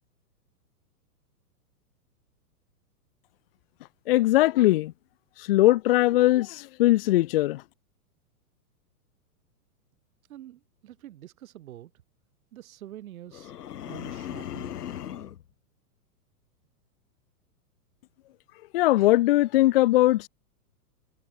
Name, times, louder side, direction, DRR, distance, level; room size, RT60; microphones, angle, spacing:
voice 1, 4.1-4.9 5.4-7.6 18.7-20.3, left 16 dB, 40° left, 0.6 m, -20 dB
voice 2, 10.3-11.9 12.5-13.5 13.8-14.8, right 13 dB, 60° right, 5.3 m, -46 dB
sound 1, 13.3-15.4, left 10 dB, 75° left, 2.8 m, -37 dB
hypercardioid pair, 150°, 47 cm